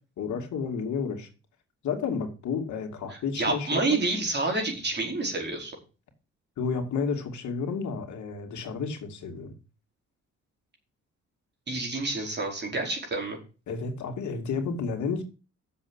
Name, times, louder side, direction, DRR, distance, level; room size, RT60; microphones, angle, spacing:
voice 1, 0.2-1.3 1.8-4.0 6.6-9.5 13.7-15.2, left 5 dB, 70° left, 4 dB, 2.7 m, -31 dB
voice 2, 3.1-5.7 11.7-13.4, right 2 dB, 35° right, 1 dB, 5.0 m, -29 dB
7.6 x 7.3 x 8.1 m, 0.33 s
cardioid pair, 90°, 30 cm